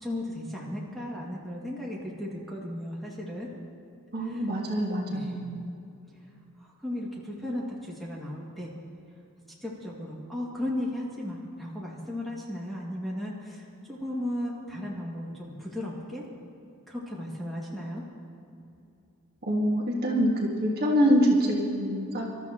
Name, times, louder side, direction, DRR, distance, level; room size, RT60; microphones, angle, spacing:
voice 1, 0.0-3.5 4.3-4.4 5.1-5.5 6.6-8.7 9.6-16.2 16.9-18.0, left 1 dB, ahead, -5 dB, 2.3 m, -35 dB
voice 2, 4.1-5.7 19.5-22.2, equal, 45° right, -2 dB, 1.8 m, -25 dB
26.0 x 13.0 x 3.1 m, 2.7 s
head